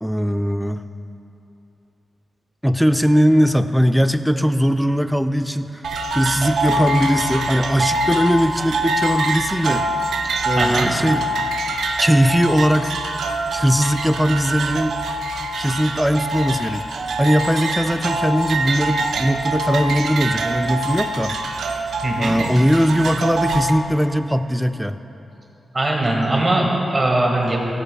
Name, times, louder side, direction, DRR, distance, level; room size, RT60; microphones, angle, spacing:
voice 1, 0.0-0.8 2.6-5.8 6.1-9.9 10.4-11.2 12.0-12.9 13.5-15.0 15.6-16.9 17.2-21.4 22.2-25.0, equal, ahead, 9 dB, 0.3 m, -19 dB
sound 1, 5.8-23.7, right 2 dB, 85° right, 0.5 m, -24 dB
voice 2, 10.6-10.9 22.0-22.4 25.7-27.6, right 2 dB, 30° right, -1 dB, 1.7 m, -20 dB
16.0 x 7.9 x 2.3 m, 2.8 s
cardioid pair, 90°, 0 cm